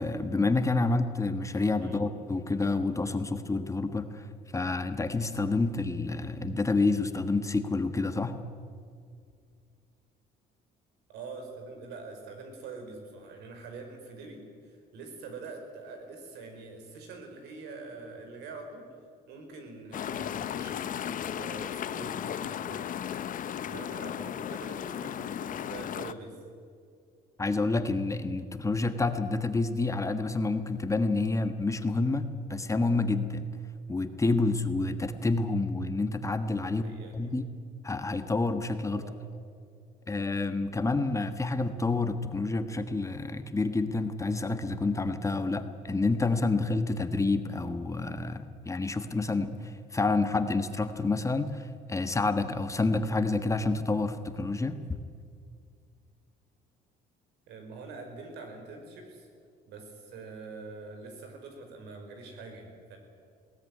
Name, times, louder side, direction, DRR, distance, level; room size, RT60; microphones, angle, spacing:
voice 1, 0.0-4.3 4.5-8.3 27.4-33.5 33.9-36.8 37.1-37.5 37.8-39.1 40.1-55.0, left 3 dB, 20° left, 8 dB, 1.4 m, -28 dB
voice 2, 11.1-18.9 19.3-23.0 23.6-26.4 36.6-37.3 38.9-39.2 57.5-59.3 59.7-63.0, right 3 dB, 85° right, 4 dB, 5.2 m, -44 dB
sound 1, 19.9-26.1, left 9 dB, 50° left, 0.9 m, -35 dB
20.5 x 17.5 x 9.7 m, 2.3 s
cardioid pair, 110°, 17 cm